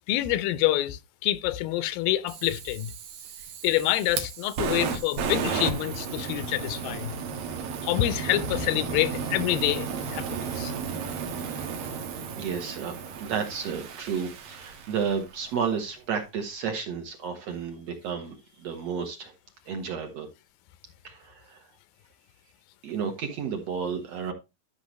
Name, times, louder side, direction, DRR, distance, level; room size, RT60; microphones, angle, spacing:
voice 1, 0.1-2.9 3.6-7.1 7.8-10.7, left 14 dB, 85° left, 2.4 m, -27 dB
Fire, 2.3-15.4, right 6 dB, 80° right, 3.2 m, -34 dB
voice 2, 12.3-19.3 19.7-20.3 21.0-21.7 22.8-24.3, right 6 dB, 60° right, 2.0 m, -32 dB
12.5 x 5.9 x 3.0 m
omnidirectional pair, 4.1 m